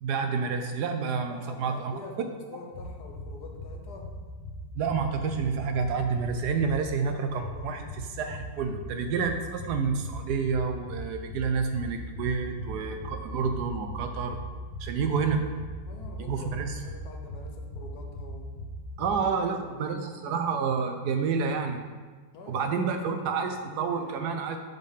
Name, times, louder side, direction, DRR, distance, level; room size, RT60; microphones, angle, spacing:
voice 1, 0.0-1.9 4.7-7.8 8.2-14.4 14.8-15.4 16.2-16.8 19.0-21.8 22.5-24.6, right 5 dB, 70° right, 6 dB, 1.1 m, -29 dB
voice 2, 1.3-4.1 6.8-7.8 8.6-8.7 15.9-18.6 19.0-20.4 22.3-24.3, left 3 dB, 65° left, 2 dB, 1.3 m, -46 dB
sound 1, 2.7-19.1, left 1 dB, 25° left, 1.3 m, -40 dB
7.2 x 3.8 x 5.6 m, 1.4 s
omnidirectional pair, 1.9 m